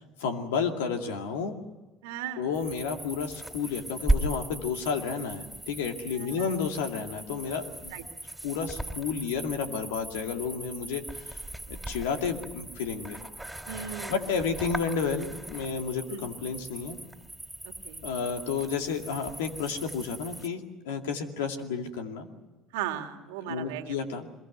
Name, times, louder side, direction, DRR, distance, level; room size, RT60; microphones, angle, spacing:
voice 1, 0.0-1.5 2.4-7.9 8.4-11.4 11.7-13.2 14.1-17.0 18.0-22.3 23.5-24.3, left 6 dB, 85° left, 5 dB, 2.4 m, -31 dB
voice 2, 2.0-2.5 6.1-6.5 7.9-8.0 13.7-14.2 16.1-16.2 17.6-18.0 22.7-23.9, right 10 dB, 85° right, 6 dB, 2.1 m, -37 dB
sound 1, 2.5-20.5, right 1 dB, 5° right, 3.4 m, -37 dB
24.5 x 22.0 x 7.9 m, 1.2 s
hypercardioid pair, 75°, 0 cm